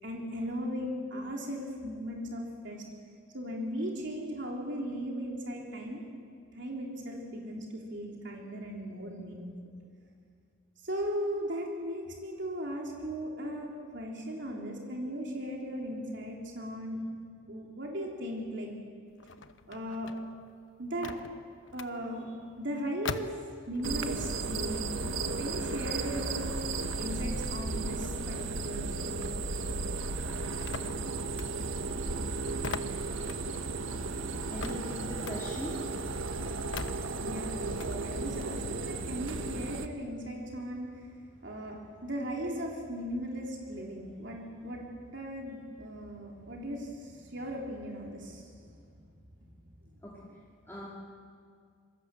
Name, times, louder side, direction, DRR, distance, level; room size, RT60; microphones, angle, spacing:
voice 1, 0.0-2.8 3.3-6.0 6.5-9.5 10.8-17.0 17.5-18.7 19.7-20.1 20.8-21.2 21.7-23.4 23.7-26.4 27.0-29.1 36.9-49.0, equal, 60° right, -1 dB, 3.5 m, -37 dB
sound 1, 19.1-24.2 24.6-29.4 29.7-38.0, left 4 dB, 70° left, 1.0 m, -44 dB
sound 2, 23.8-39.9, right 3 dB, 75° right, 1.5 m, -34 dB
voice 2, 34.5-36.0 50.0-50.9, equal, 10° left, -6 dB, 2.6 m, -41 dB
26.5 x 24.5 x 7.6 m, 2.2 s
head